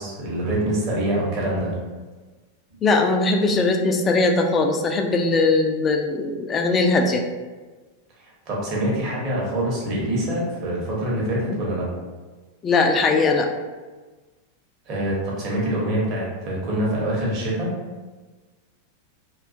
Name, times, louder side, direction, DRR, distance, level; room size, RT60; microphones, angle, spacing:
voice 1, 0.0-1.7 8.2-11.9 14.9-17.7, right 1 dB, 35° right, -4 dB, 0.8 m, -25 dB
voice 2, 2.8-7.2 12.6-13.5, left 3 dB, 25° left, 3 dB, 0.3 m, -20 dB
2.4 x 2.2 x 2.5 m, 1.3 s
figure-of-eight pair, 90°, 0 cm